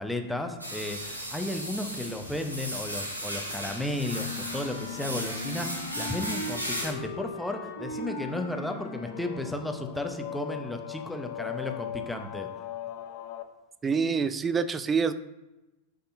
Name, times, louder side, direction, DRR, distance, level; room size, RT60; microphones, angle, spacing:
voice 1, 0.0-12.5, left 1 dB, ahead, 4 dB, 0.8 m, -34 dB
sound 1, 0.6-6.9, equal, 85° right, 1.2 m, -36 dB
sound 2, 3.1-13.4, left 11 dB, 50° left, 0.6 m, -41 dB
Wind instrument woodwind instrument, 4.5-9.7, left 1 dB, 65° left, 1.8 m, -40 dB
voice 2, 13.8-15.1, right 5 dB, 20° right, 12 dB, 0.4 m, -26 dB
11.0 x 5.2 x 2.7 m, 1.0 s
figure-of-eight pair, 90°, 0 cm